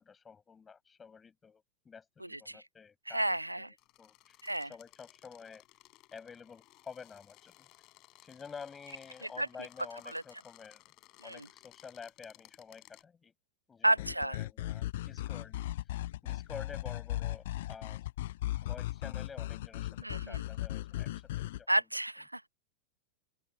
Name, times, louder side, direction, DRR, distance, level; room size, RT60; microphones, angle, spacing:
voice 1, 0.0-5.6 6.1-7.7 8.2-10.8 11.2-13.3 13.7-15.9 16.2-18.1 18.6-21.7, left 6 dB, 15° left, 7.3 m, -50 dB
voice 2, 2.2-2.6 3.1-3.7 4.4-4.7 9.4-9.5 10.1-10.2 11.2-11.5 13.8-14.4 20.0-20.4 21.7-22.5, right 1 dB, 85° right, 0.7 m, -31 dB
sound 1, 3.8-13.0, left 20 dB, 40° left, 6.8 m, -60 dB
sound 2, 14.0-21.6, left 15 dB, 55° left, 0.6 m, -37 dB
open air
figure-of-eight pair, 90°, 0 cm